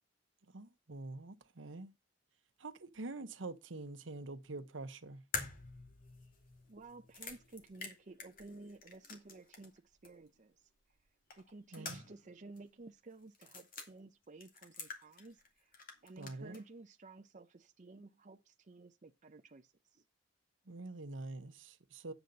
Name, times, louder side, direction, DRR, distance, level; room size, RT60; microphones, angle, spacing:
voice 1, 0.5-1.9 2.6-5.2 11.7-12.0 16.2-16.6 20.7-22.1, right 2 dB, 80° right, 1.0 m, -46 dB
sound 1, 5.3-9.8 10.0-10.1 11.3-12.3 12.6-12.7 13.3-13.9 14.4-15.5 15.7-16.6, left 4 dB, 50° left, 2.3 m, -46 dB
voice 2, 6.7-10.5 11.3-15.7 16.0-20.0, right 3 dB, 40° right, 0.6 m, -54 dB
9.4 x 8.0 x 4.0 m
head